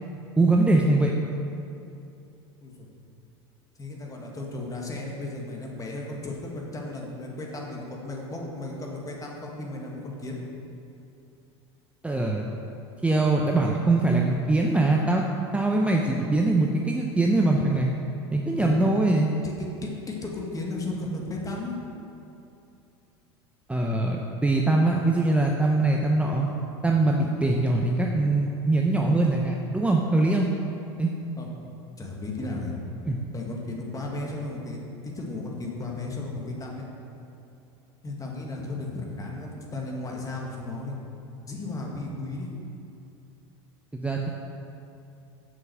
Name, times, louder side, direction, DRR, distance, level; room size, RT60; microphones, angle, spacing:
voice 1, 0.4-1.1 12.0-12.5 13.0-15.2 15.5-17.9 18.3-19.3 23.7-26.5 26.8-30.5 31.0-31.1 33.0-33.2 43.9-44.3, right 2 dB, 10° right, 0 dB, 0.7 m, -22 dB
voice 2, 3.8-10.4 18.6-18.7 19.4-19.5 19.8-21.8 31.4-31.5 32.0-32.8 33.3-34.8 35.1-36.9 38.0-41.0 41.5-42.5, left 2 dB, 25° left, -1 dB, 1.8 m, -34 dB
7.3 x 6.4 x 6.1 m, 2.8 s
hypercardioid pair, 85°, 14 cm